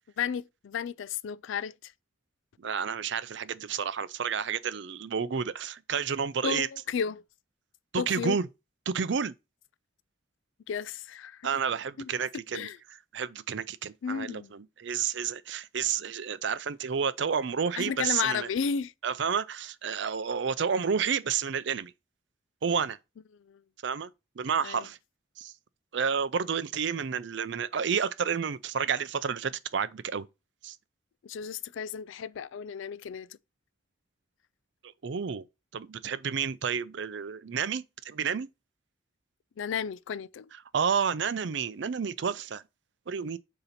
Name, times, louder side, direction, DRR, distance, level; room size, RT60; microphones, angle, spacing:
voice 1, 0.2-1.9 6.4-7.2 8.0-8.4 10.7-11.4 12.0-12.1 12.5-12.8 14.0-14.5 17.8-18.9 23.5-23.6 24.6-24.8 31.2-33.3 39.6-40.5, left 7 dB, 70° left, 0.3 m, -33 dB
voice 2, 2.6-6.7 7.9-8.5 8.9-9.3 11.4-12.7 13.1-18.5 19.0-21.9 22.6-23.0 23.8-24.1 24.4-25.0 25.4-25.5 25.9-30.3 30.6-30.8 34.8-35.5 35.7-38.5 40.7-42.6 43.1-43.4, right 6 dB, 60° right, 0.5 m, -30 dB
6.7 x 2.9 x 5.7 m
head